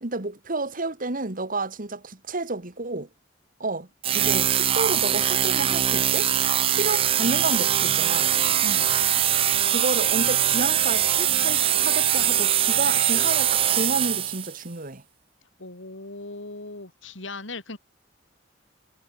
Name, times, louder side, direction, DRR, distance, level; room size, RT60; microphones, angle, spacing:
voice 1, 0.0-3.1 3.6-3.9 4.1-6.3 6.6-8.3 9.7-15.0, right 3 dB, 45° right, 2.2 m, -30 dB
sound 1, 4.0-14.6, right 10 dB, 30° right, 0.4 m, -22 dB
voice 2, 8.6-9.0 15.6-17.8, left 2 dB, 80° left, 3.6 m, -38 dB
head